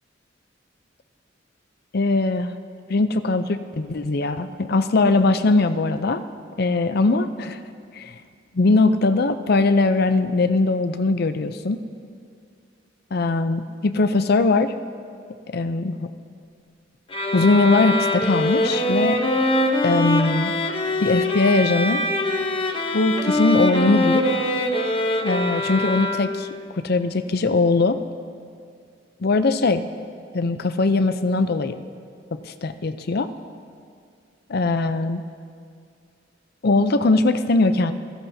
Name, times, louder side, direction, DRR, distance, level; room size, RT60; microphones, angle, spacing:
voice 1, 1.9-2.5 2.9-6.2 6.6-7.6 7.9-8.1 8.5-11.8 13.1-14.7 15.5-16.1 17.3-19.2 19.8-20.5 21.0-22.0 22.9-24.2 25.2-26.5 26.8-28.0 29.2-29.8 30.3-31.8 32.4-33.3 34.5-35.2 36.6-37.9, left 3 dB, 55° left, 10 dB, 0.6 m, -20 dB
sound 1, 17.1-26.6, left 1 dB, 30° left, 0.9 m, -23 dB
25.0 x 16.5 x 2.8 m, 2.3 s
head